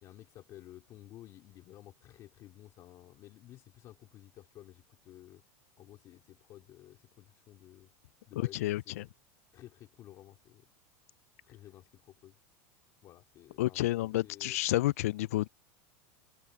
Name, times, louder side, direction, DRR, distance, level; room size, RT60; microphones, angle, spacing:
voice 1, 0.0-5.4 5.8-7.9 8.3-9.1 9.5-10.6 11.4-12.4 13.0-14.6, left 14 dB, 40° left, 2.9 m, -54 dB
voice 2, 8.3-9.1 13.6-15.5, left 17 dB, 80° left, 0.3 m, -30 dB
supercardioid pair, 125°, 8 cm